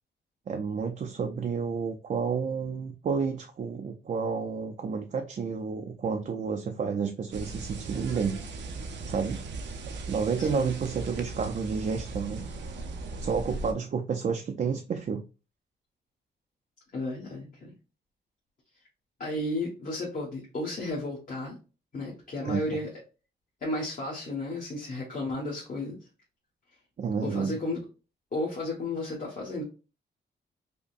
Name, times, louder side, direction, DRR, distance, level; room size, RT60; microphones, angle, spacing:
voice 1, 0.5-8.4 9.1-9.4 10.1-12.5 13.2-15.2 22.4-22.8 27.0-27.6, right 5 dB, 45° right, 0.5 m, -30 dB
sound 1, 7.3-13.7, right 3 dB, 80° right, 0.7 m, -38 dB
voice 2, 16.9-17.7 19.2-21.6 21.9-22.9 23.6-26.0 27.2-27.8 28.3-29.6, left 2 dB, 45° left, 1.4 m, -33 dB
5.2 x 2.1 x 2.4 m
wide cardioid pair, 125°, 18 cm